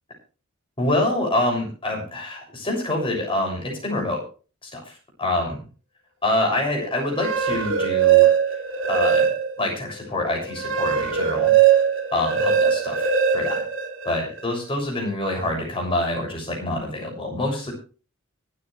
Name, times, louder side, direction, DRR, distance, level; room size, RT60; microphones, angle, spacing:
voice 1, 0.8-4.2 4.6-4.8 5.2-5.6 6.2-8.3 8.9-9.3 9.6-11.8 12.1-13.6 14.0-17.7, left 1 dB, 25° left, 0 dB, 7.0 m, -26 dB
sound 1, 7.0-9.7 10.1-14.4, right 8 dB, 65° right, 2.8 m, -20 dB
24.5 x 9.2 x 3.4 m, 0.36 s
head